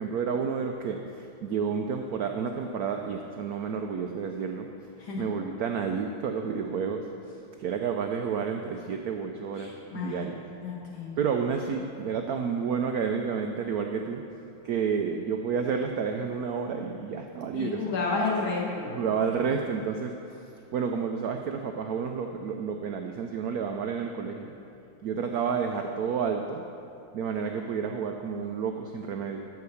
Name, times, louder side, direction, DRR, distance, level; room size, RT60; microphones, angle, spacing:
voice 1, 0.0-4.7 5.2-10.4 11.2-14.2 14.6-17.8 18.9-24.5 25.0-26.6 27.1-29.5, right 6 dB, 90° right, 4 dB, 0.8 m, -30 dB
voice 2, 5.0-5.3 9.6-10.3 10.6-11.2 17.5-18.9, left 4 dB, 75° left, -3 dB, 2.4 m, -31 dB
12.5 x 4.8 x 6.9 m, 2.8 s
omnidirectional pair, 2.2 m